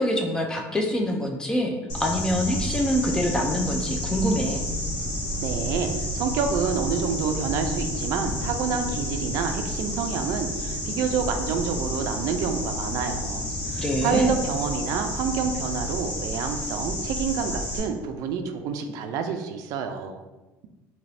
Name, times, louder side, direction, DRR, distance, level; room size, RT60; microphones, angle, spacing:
voice 1, 0.0-4.6 13.8-14.4, equal, 10° left, 2 dB, 0.3 m, -25 dB
sound 1, 1.9-17.8, left 1 dB, 75° left, 1.4 m, -30 dB
voice 2, 5.4-20.2, right 6 dB, 65° right, 6 dB, 0.3 m, -28 dB
2.8 x 2.6 x 3.2 m, 1.2 s
cardioid pair, 155°, 7 cm